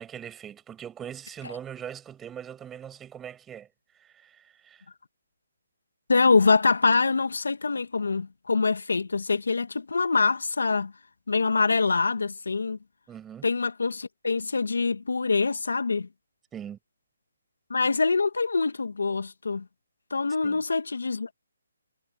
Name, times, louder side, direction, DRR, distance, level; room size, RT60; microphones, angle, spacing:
voice 1, 0.0-3.7 4.0-4.8 13.1-13.4 16.5-16.8 20.4-20.6, right 9 dB, 10° right, 6.2 m, -41 dB
voice 2, 6.1-10.9 11.3-12.8 13.4-16.1 17.7-19.6 20.1-21.3, left 4 dB, 80° left, 1.9 m, -24 dB
hypercardioid pair, 155°, 0 cm